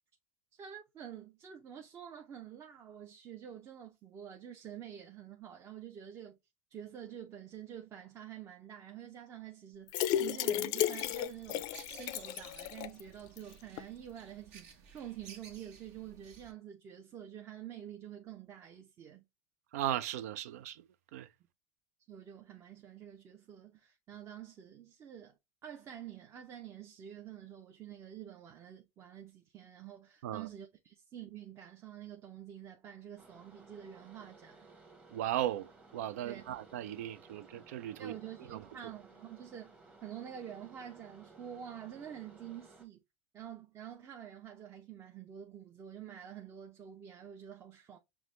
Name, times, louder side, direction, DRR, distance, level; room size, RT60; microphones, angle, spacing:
voice 1, 0.5-6.4 6.7-11.7 11.9-19.2 22.1-34.7 36.2-36.4 38.0-39.7 40.0-43.0 43.3-48.0, right 10 dB, 35° right, 0.6 m, -48 dB
sound 1, 9.9-13.0 13.4-13.5 13.8-13.9, left 12 dB, 55° left, 0.4 m, -33 dB
sound 2, 11.0-16.5, right 6 dB, 70° right, 1.2 m, -56 dB
voice 2, 19.7-20.8 21.1-21.3 30.2-30.5 35.1-38.1 38.5-38.6, right 12 dB, 85° right, 0.4 m, -37 dB
sound 3, 33.2-42.9, right 3 dB, 15° right, 0.9 m, -58 dB
5.8 x 2.1 x 3.1 m
supercardioid pair, 120°, 8 cm